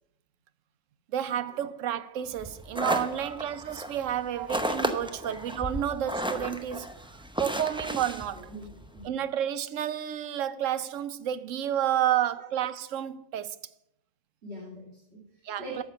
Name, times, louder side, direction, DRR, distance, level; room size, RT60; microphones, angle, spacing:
voice 1, 1.1-6.9 7.4-8.5 9.0-13.6 15.4-15.8, right 10 dB, 80° right, 1.0 m, -30 dB
sound 1, 2.3-9.1, equal, 5° right, 0.5 m, -34 dB
voice 2, 8.3-9.3 12.4-12.5 14.4-15.8, right 2 dB, 55° right, 2.5 m, -43 dB
13.5 x 6.0 x 5.6 m
omnidirectional pair, 1.3 m